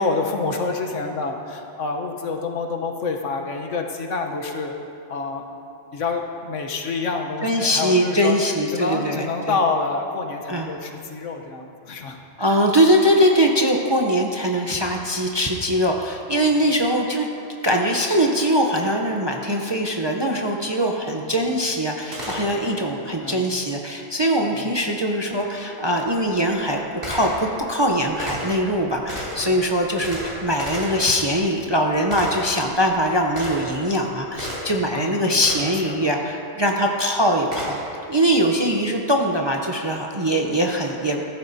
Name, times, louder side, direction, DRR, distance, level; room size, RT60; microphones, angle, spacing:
voice 1, 0.0-4.7 5.1-5.4 5.9-8.4 8.7-12.6 23.2-23.5 24.5-24.6 29.3-29.7 30.0-30.1 34.9-35.3 35.6-36.1, left 4 dB, 75° left, 3 dB, 1.3 m, -27 dB
voice 2, 7.4-9.6 10.5-10.7 12.4-17.3 17.6-37.8 38.1-41.2, equal, 30° right, 1 dB, 0.5 m, -22 dB
Gunshot gunfire, 22.1-22.9 25.3-25.4 26.1-34.9 35.4-35.9 37.5-38.0, equal, 45° right, 3.2 m, -35 dB
15.0 x 13.5 x 2.7 m, 2.7 s
omnidirectional pair, 1.3 m